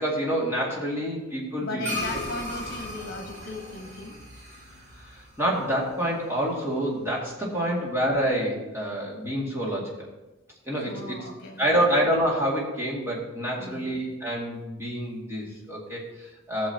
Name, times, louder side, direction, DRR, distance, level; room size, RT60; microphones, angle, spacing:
voice 1, 0.0-1.9 5.0-10.1 10.7-11.2 11.6-16.7, equal, 10° right, -5 dB, 2.3 m, -27 dB
voice 2, 1.6-4.2 7.5-7.8 10.8-11.8 13.6-13.9, left 2 dB, 50° left, 4 dB, 1.3 m, -37 dB
sound 1, 1.8-6.5, left 1 dB, 60° right, 2.4 m, -37 dB
14.0 x 7.2 x 2.9 m, 1.0 s
head